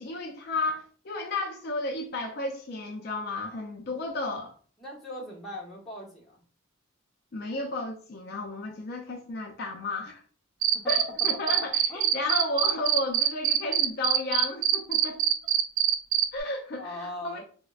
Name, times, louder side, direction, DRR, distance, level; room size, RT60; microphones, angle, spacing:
voice 1, 0.0-4.5 7.3-10.2 10.9-15.2 16.3-17.4, left 2 dB, 50° left, 0.4 m, -33 dB
voice 2, 4.8-6.4 11.9-12.1 16.8-17.4, left 1 dB, ahead, 0.8 m, -39 dB
Cricket, 10.6-16.2, right 12 dB, 80° right, 0.4 m, -23 dB
4.1 x 2.0 x 2.3 m
head